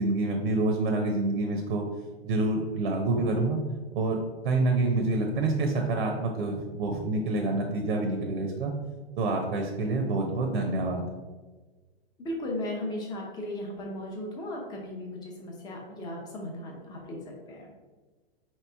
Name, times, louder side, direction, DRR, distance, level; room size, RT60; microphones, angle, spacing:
voice 1, 0.0-1.8 2.2-3.6 3.9-4.2 4.4-8.7 9.2-11.0, right 2 dB, 65° right, 2 dB, 0.8 m, -27 dB
voice 2, 12.2-17.7, left 1 dB, 15° left, -1 dB, 0.6 m, -36 dB
4.6 x 3.1 x 3.4 m, 1.3 s
hypercardioid pair, 155°, 31 cm